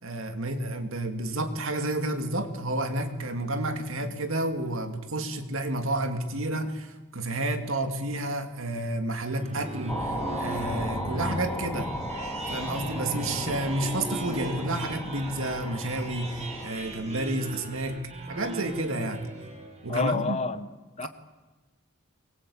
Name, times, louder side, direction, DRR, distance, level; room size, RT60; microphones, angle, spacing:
voice 1, 0.0-11.9 12.5-18.0 18.3-19.3 19.8-20.4 21.0-21.1, right 1 dB, 65° right, 2.4 m, -30 dB
sound 1, 9.1-20.0, right 1 dB, 30° right, 3.8 m, -38 dB
sound 2, 9.9-16.7, equal, 10° left, 2.1 m, -36 dB
voice 2, 19.9-20.7 21.0-21.1, left 3 dB, 30° left, 1.0 m, -28 dB
24.5 x 22.0 x 8.7 m
head